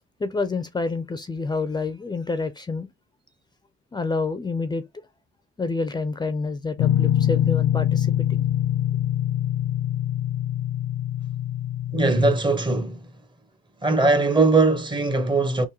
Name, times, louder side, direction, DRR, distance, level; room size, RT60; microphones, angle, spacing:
voice 1, 0.2-2.9 3.9-4.8 5.6-8.4, left 3 dB, 20° left, 0.5 m, -28 dB
sound 1, 6.8-12.4, left 11 dB, 70° left, 0.5 m, -24 dB
voice 2, 11.9-13.0 13.8-15.7, right 3 dB, 25° right, 0.8 m, -20 dB
3.7 x 2.5 x 2.9 m
cardioid pair, 90°, 20 cm